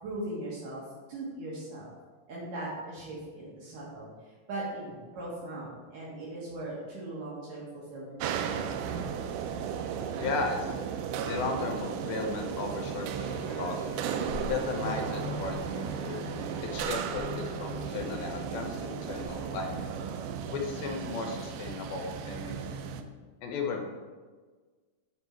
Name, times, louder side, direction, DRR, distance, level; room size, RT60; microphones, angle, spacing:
voice 1, 0.0-0.8 1.1-1.9 2.3-8.2 8.4-9.0, right 1 dB, 65° right, -6 dB, 2.8 m, -39 dB
sound 1, 8.2-23.0, right 7 dB, 90° right, 1.8 m, -35 dB
voice 2, 10.2-10.8 11.2-13.9 14.5-19.9 20.5-22.9 23.4-23.8, left 4 dB, 80° left, 2 dB, 2.5 m, -35 dB
sound 2, 13.3-20.4 21.0-21.1, left 4 dB, 55° left, 1.4 m, -43 dB
8.6 x 3.6 x 4.3 m, 1.4 s
omnidirectional pair, 4.2 m